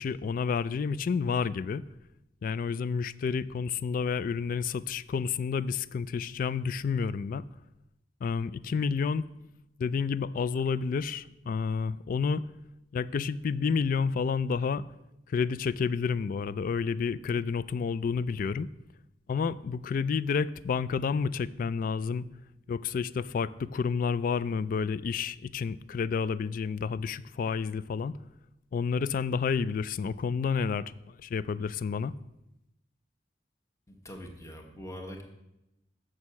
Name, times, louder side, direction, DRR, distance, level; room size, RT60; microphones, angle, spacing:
voice 1, 0.0-1.8 2.4-7.5 8.2-9.2 9.8-12.4 12.9-14.8 15.3-18.7 19.3-22.3 22.7-28.2 28.7-30.9 31.2-32.1, left 5 dB, 50° left, 17 dB, 0.3 m, -30 dB
voice 2, 33.9-35.2, equal, 15° left, 3 dB, 1.1 m, -43 dB
6.4 x 6.3 x 7.1 m, 0.89 s
head